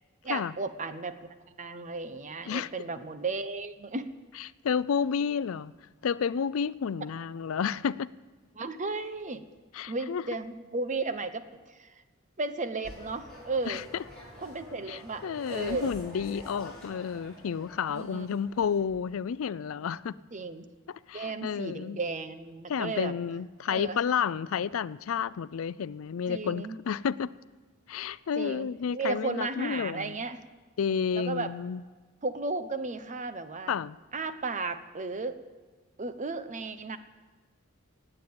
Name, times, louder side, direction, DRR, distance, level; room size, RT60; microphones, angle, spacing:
voice 1, 0.2-4.1 8.5-9.4 9.9-11.4 11.7-11.9 12.4-13.8 14.4-15.2 15.5-15.9 17.9-18.3 20.3-20.7 21.1-23.1 23.7-24.0 26.3-26.8 28.4-30.4 31.1-31.5 32.2-33.8 34.1-35.4 36.0-37.0, right 3 dB, 35° right, 0.9 m, -34 dB
voice 2, 4.4-5.7 6.0-8.1 9.7-10.2 13.7-14.0 14.9-20.2 20.9-22.0 22.7-27.3 27.9-30.2 30.8-31.8 33.7-34.0, left 7 dB, 75° left, 0.4 m, -31 dB
sound 1, 12.8-19.0, left 1 dB, 5° left, 5.8 m, -47 dB
17.5 x 8.9 x 8.7 m
head